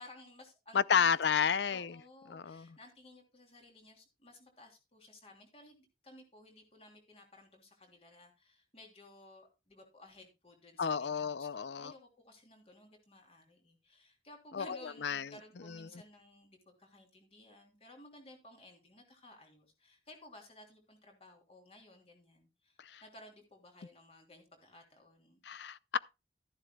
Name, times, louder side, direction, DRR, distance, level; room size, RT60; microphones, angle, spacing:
voice 1, 0.0-5.8 6.0-25.4, left 1 dB, 35° left, 3.3 m, -57 dB
voice 2, 0.7-1.9 2.3-2.7 10.8-11.9 14.5-15.3 22.9-23.0 25.5-26.0, left 7 dB, 80° left, 0.5 m, -31 dB
13.0 x 11.0 x 2.3 m
head